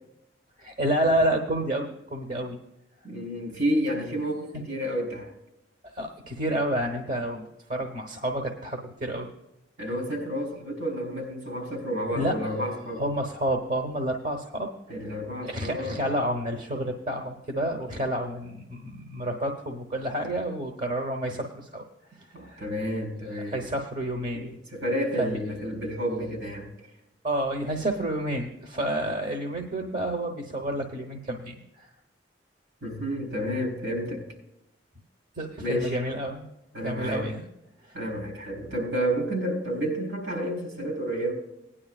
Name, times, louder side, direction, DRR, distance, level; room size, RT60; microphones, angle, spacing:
voice 1, 0.6-2.6 5.8-9.3 12.1-12.3 13.0-14.7 15.0-15.1 15.4-21.8 22.1-22.6 23.5-24.5 25.2-25.4 27.2-31.9 35.4-36.5 36.8-37.4 37.9-38.0, right 1 dB, 45° right, 2 dB, 1.0 m, -29 dB
voice 2, 3.0-5.3 9.8-13.0 14.9-16.0 22.3-23.7 24.3-26.7 32.8-34.3 35.6-36.0 36.7-37.3 37.9-41.3, equal, 90° right, 0 dB, 3.9 m, -30 dB
18.0 x 10.0 x 2.4 m, 0.86 s
head